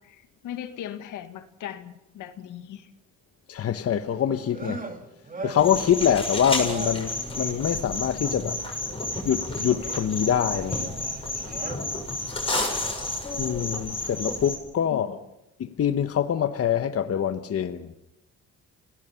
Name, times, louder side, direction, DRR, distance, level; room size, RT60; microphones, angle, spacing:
voice 1, 0.0-2.9 14.9-15.2, left 10 dB, 85° left, 1.9 m, -38 dB
voice 2, 3.5-4.9 5.4-8.6 9.2-10.9 13.4-15.2 15.6-18.0, left 9 dB, 50° left, 1.1 m, -25 dB
sound 1, 4.0-8.7 9.2-11.8, right 3 dB, 30° right, 2.5 m, -41 dB
sound 2, 5.6-14.6, left 2 dB, 20° left, 7.7 m, -31 dB
29.5 x 18.0 x 5.7 m
cardioid pair, 90°, 30 cm